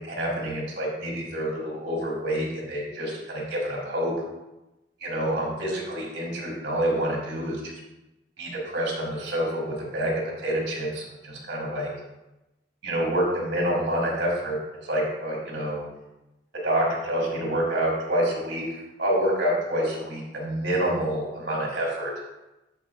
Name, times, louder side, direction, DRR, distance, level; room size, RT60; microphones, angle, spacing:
voice 1, 0.0-4.1 5.0-7.6 8.4-10.1 10.4-11.9 12.8-14.6 14.8-15.8 16.6-18.6 19.0-22.1, right 1 dB, 65° right, -3 dB, 2.9 m, -27 dB
11.0 x 6.2 x 2.4 m, 0.98 s
head